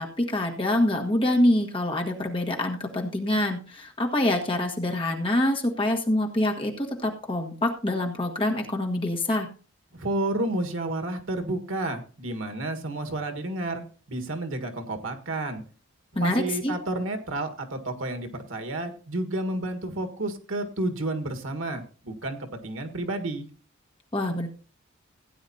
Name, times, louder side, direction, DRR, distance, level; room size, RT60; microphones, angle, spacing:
voice 1, 0.0-9.5 16.1-16.7 24.1-24.5, left 1 dB, 25° left, 1 dB, 1.6 m, -25 dB
voice 2, 9.9-15.6 16.2-23.5, right 2 dB, 85° right, 7 dB, 1.6 m, -31 dB
16.5 x 9.4 x 2.8 m, 0.37 s
head